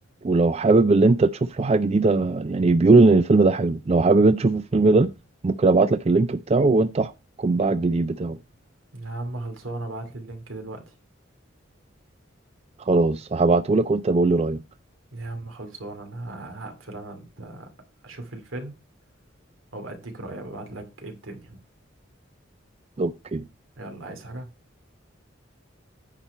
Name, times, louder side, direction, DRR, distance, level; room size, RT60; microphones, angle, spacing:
voice 1, 0.2-5.1 5.4-7.1 7.4-8.4 12.9-14.6 23.0-23.4, right 3 dB, 30° right, 0.4 m, -19 dB
voice 2, 8.9-10.9 15.1-17.7 18.0-18.7 19.7-21.6 23.8-24.5, right 2 dB, 85° right, 2.5 m, -37 dB
9.9 x 4.5 x 5.4 m
head